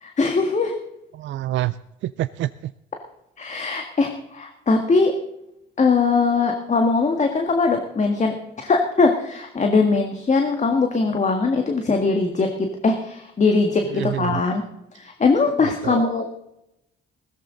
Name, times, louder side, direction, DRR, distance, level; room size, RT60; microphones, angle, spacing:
voice 1, 0.0-0.8 3.4-5.1 5.8-14.6 14.9-16.3, left 4 dB, 35° left, 4 dB, 1.8 m, -21 dB
voice 2, 1.1-1.7 2.0-2.7 13.9-14.4 15.8-16.1, right 14 dB, 70° right, 15 dB, 0.4 m, -27 dB
16.0 x 14.0 x 3.9 m, 0.85 s
cardioid pair, 90°, 20 cm